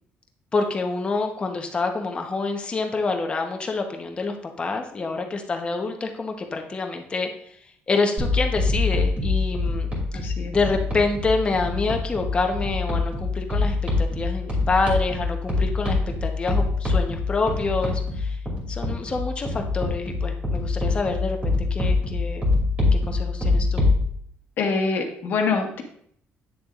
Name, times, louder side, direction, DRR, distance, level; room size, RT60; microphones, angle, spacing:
voice 1, 0.5-7.3 7.9-9.9 10.5-18.4 18.7-22.4 22.9-23.8, left 3 dB, 25° left, 4 dB, 1.0 m, -27 dB
sound 1, 8.2-24.0, left 3 dB, 30° right, 2.7 m, -25 dB
voice 2, 10.1-10.5 24.6-25.8, left 4 dB, 55° left, 3 dB, 1.4 m, -25 dB
9.4 x 6.8 x 2.5 m, 0.65 s
cardioid pair, 135°, 4 cm